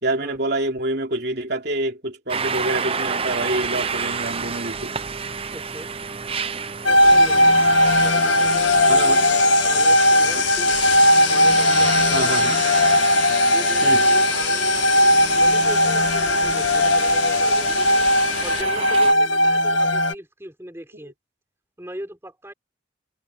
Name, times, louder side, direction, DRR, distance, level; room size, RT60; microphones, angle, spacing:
voice 1, 0.0-4.9 8.9-9.3 10.3-10.4 12.1-12.6 13.8-14.0, right 2 dB, 55° right, 3.2 m, -26 dB
sound 1, 2.3-19.1, right 5 dB, 30° right, 0.8 m, -30 dB
voice 2, 5.5-5.9 6.8-7.6 8.0-10.8 11.3-12.5 13.5-18.1 18.4-21.1 21.8-22.5, equal, 15° right, 4.0 m, -38 dB
sound 2, 6.9-20.1, left 1 dB, 75° left, 1.4 m, -18 dB
sound 3, 7.0-18.6, left 11 dB, 60° left, 4.0 m, -29 dB
head